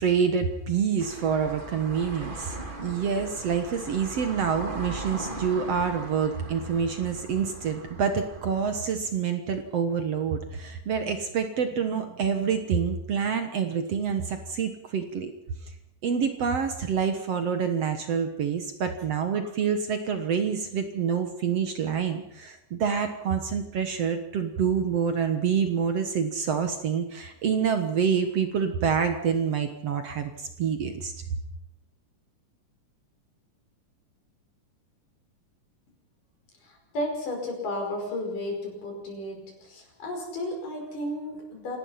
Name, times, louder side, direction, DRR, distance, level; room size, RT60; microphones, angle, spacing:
voice 1, 0.0-2.6 2.8-15.3 16.0-31.1, right 6 dB, 55° right, 7 dB, 2.1 m, -27 dB
sound 1, 1.0-8.8, right 2 dB, 15° right, 2.0 m, -39 dB
voice 2, 36.6-41.8, left 1 dB, 70° left, 2 dB, 7.0 m, -33 dB
27.5 x 18.0 x 5.8 m, 0.78 s
omnidirectional pair, 3.8 m